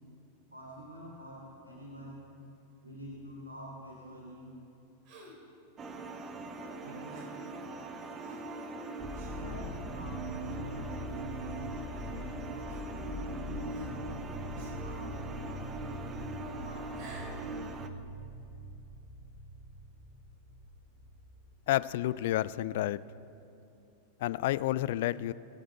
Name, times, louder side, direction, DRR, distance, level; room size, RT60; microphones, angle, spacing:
voice 1, 0.5-2.3 2.8-4.5 6.8-7.3 9.3-16.2 16.6-17.3, equal, 80° right, -4 dB, 2.5 m, -48 dB
Gasp, 5.1-5.5 7.1-7.5 8.2-8.6 9.1-9.4 10.1-10.3 11.4-11.5 12.7-13.3 13.7-14.2 14.5-14.9 16.8-17.4, right 1 dB, 40° right, 2.3 m, -51 dB
sound 1, 5.8-17.9, right 3 dB, 25° right, 0.8 m, -41 dB
sound 2, 9.0-22.9, left 1 dB, ahead, 1.9 m, -43 dB
voice 2, 21.7-23.0 24.2-25.3, left 15 dB, 55° left, 17 dB, 0.3 m, -30 dB
21.5 x 7.3 x 4.5 m, 2.8 s
figure-of-eight pair, 90°, 0 cm